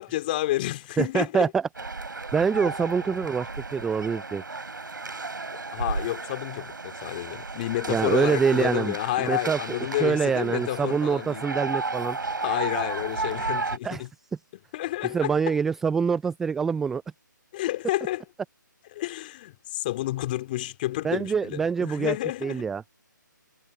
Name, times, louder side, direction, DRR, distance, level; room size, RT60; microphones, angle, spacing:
voice 1, 0.0-1.5 5.5-11.4 12.4-14.1 14.7-15.5 17.5-18.2 18.9-22.6, left 16 dB, 30° left, 2.6 m, -30 dB
voice 2, 1.0-1.6 2.3-4.4 7.9-9.6 10.0-12.2 13.8-14.0 15.1-17.0 21.0-22.2 22.4-22.8, right 6 dB, 5° right, 0.3 m, -25 dB
sound 1, 1.7-13.8, right 3 dB, 80° right, 4.7 m, -33 dB
figure-of-eight pair, 150°, 11 cm